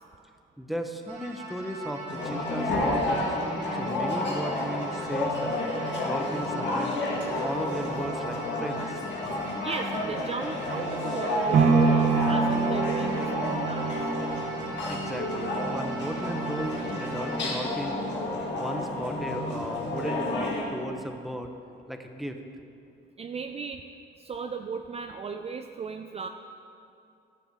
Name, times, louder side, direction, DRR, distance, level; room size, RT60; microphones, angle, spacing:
voice 1, 0.6-3.4 3.7-5.6 6.0-7.0 7.4-9.0 14.9-18.0 18.5-21.5 21.9-22.4, equal, ahead, 5 dB, 0.7 m, -36 dB
sound 1, 1.1-17.4, right 2 dB, 90° right, 1.8 m, -41 dB
sound 2, 2.1-20.6, left 2 dB, 65° left, 1.6 m, -30 dB
voice 2, 9.6-14.0 23.2-23.8 24.2-26.3, right 5 dB, 30° right, 6 dB, 0.4 m, -36 dB
sound 3, 11.5-19.6 20.1-20.2, right 4 dB, 75° right, 1.2 m, -28 dB
13.0 x 6.9 x 3.6 m, 2.5 s
cardioid pair, 90°, 20 cm